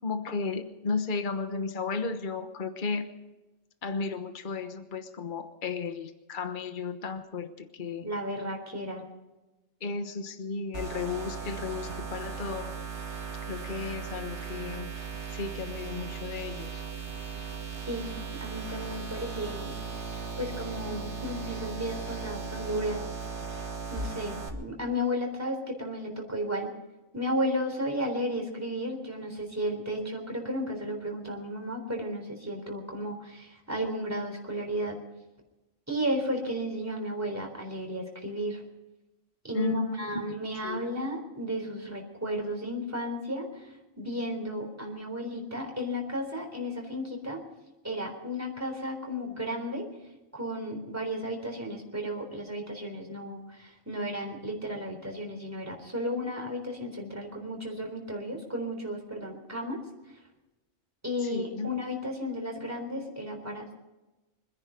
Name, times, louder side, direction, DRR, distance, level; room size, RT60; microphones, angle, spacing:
voice 1, 0.0-3.1 3.8-8.1 9.8-12.7 13.5-14.9 15.3-16.8 39.5-40.8 61.2-61.7, left 4 dB, 40° left, 8 dB, 1.3 m, -34 dB
voice 2, 8.0-9.0 17.9-18.1 18.4-19.7 20.4-23.0 23.9-26.7 27.1-35.0 35.9-38.6 39.4-47.4 47.8-49.9 50.3-59.8 61.0-63.7, equal, 10° right, 1 dB, 3.9 m, -33 dB
sound 1, 10.7-24.5, right 5 dB, 60° right, 2.5 m, -37 dB
25.5 x 10.5 x 5.2 m, 1.1 s
omnidirectional pair, 1.3 m